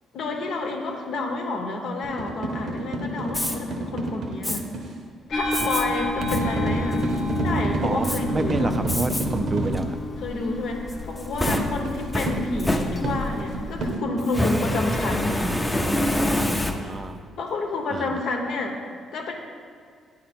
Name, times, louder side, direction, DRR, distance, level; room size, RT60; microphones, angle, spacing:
voice 1, 0.1-4.6 5.3-7.0 7.4-8.8 10.2-15.4 17.4-18.8 19.1-19.3, left 3 dB, 75° left, 2 dB, 1.0 m, -29 dB
sound 1, 2.0-4.9 6.2-9.9 11.5-14.5, right 1 dB, 65° right, 0.8 m, -28 dB
Fire, 3.3-3.6 4.4-4.6 5.5-5.8 6.3-6.4 6.9-7.4 8.0-8.2 8.9-9.3 9.7-9.8 10.9-13.4 14.3-17.1, left 1 dB, 10° left, 0.6 m, -26 dB
sound 2, 5.3-13.9, left 2 dB, 40° left, 0.8 m, -32 dB
voice 2, 8.3-10.0 16.4-17.3 17.9-18.2, right 3 dB, 30° right, 9 dB, 0.4 m, -30 dB
9.0 x 4.1 x 4.3 m, 2.2 s
cardioid pair, 90°, 0 cm